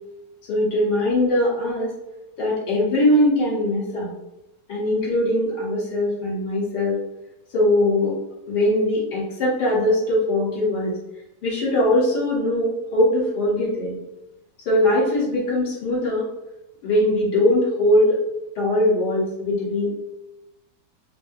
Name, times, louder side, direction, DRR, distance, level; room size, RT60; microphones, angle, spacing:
voice 1, 0.5-1.9 2.4-4.1 4.7-7.0 7.5-8.1 8.5-10.9 11.4-14.0 14.7-16.3 16.8-18.2 18.6-20.0, left 1 dB, 70° left, -5 dB, 1.9 m, -21 dB
5.2 x 2.0 x 2.6 m, 0.93 s
omnidirectional pair, 1.9 m